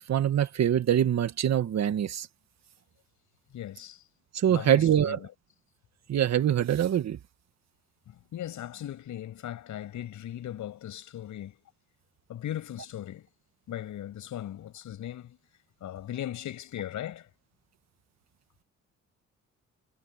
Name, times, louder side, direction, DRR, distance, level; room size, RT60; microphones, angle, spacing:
voice 1, 0.0-2.3 4.3-5.2 6.1-7.2, right 10 dB, 60° right, 1.8 m, -24 dB
voice 2, 3.5-4.0 4.5-5.3 8.1-11.6 12.3-13.3 13.7-15.4 15.8-17.3, left 12 dB, 75° left, 7.3 m, -38 dB
cardioid pair, 90°, 30 cm